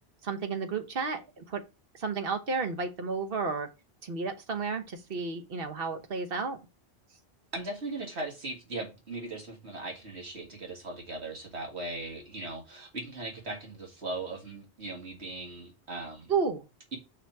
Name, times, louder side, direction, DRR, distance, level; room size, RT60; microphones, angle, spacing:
voice 1, 0.2-1.6 1.9-3.7 4.0-6.6 16.3-16.6, right 4 dB, 60° right, 1.3 m, -32 dB
voice 2, 7.5-16.3 16.9-17.0, right 2 dB, 80° right, 2.2 m, -39 dB
5.7 x 4.4 x 4.6 m
omnidirectional pair, 1.1 m